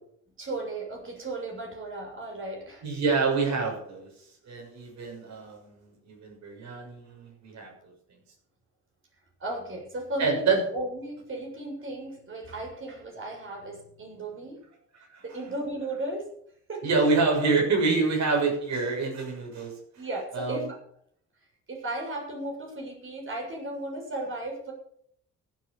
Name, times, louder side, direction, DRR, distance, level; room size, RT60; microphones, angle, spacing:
voice 1, 0.4-2.9 9.4-14.6 15.2-16.3 16.7-16.8 20.0-20.7 21.7-24.7, right 1 dB, 40° right, 0 dB, 7.1 m, -35 dB
voice 2, 2.8-4.1 4.4-7.9 10.2-10.6 15.1-15.2 16.8-19.7 20.3-20.7, right 4 dB, 65° right, 1 dB, 6.8 m, -27 dB
15.0 x 9.0 x 6.8 m, 0.67 s
cardioid pair, 90°, 30 cm